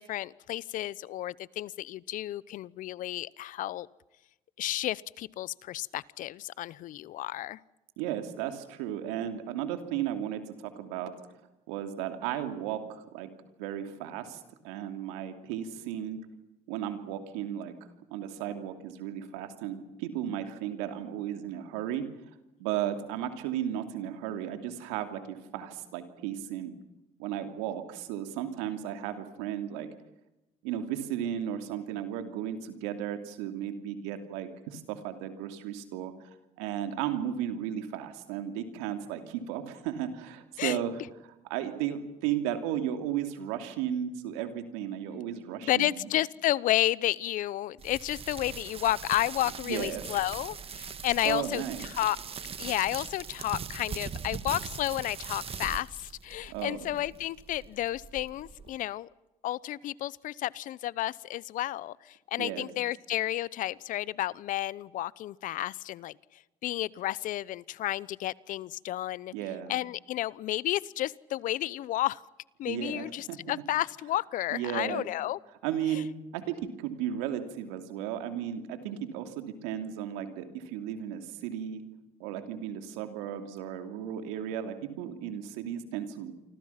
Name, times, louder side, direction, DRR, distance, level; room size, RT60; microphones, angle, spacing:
voice 1, 0.0-3.9 4.6-7.6 40.6-40.8 45.6-52.2 52.6-59.1 59.4-66.1 66.6-69.3 69.7-72.2 72.6-75.4 75.9-76.0, left 14 dB, 65° left, 21 dB, 0.8 m, -32 dB
voice 2, 8.0-11.1 11.7-13.3 13.6-16.2 16.7-17.7 18.1-22.0 22.6-26.8 27.2-29.9 30.6-36.1 36.6-41.0 41.5-46.1 49.7-50.0 51.2-51.9 56.5-56.9 62.4-62.7 69.3-69.7 72.7-73.4 74.5-75.0 75.6-76.1 76.3-81.8 82.2-86.3, right 10 dB, 90° right, 7 dB, 2.8 m, -34 dB
sound 1, 47.8-58.8, right 6 dB, 40° right, 1.7 m, -41 dB
29.0 x 25.5 x 5.9 m, 0.97 s
supercardioid pair, 70°, 15 cm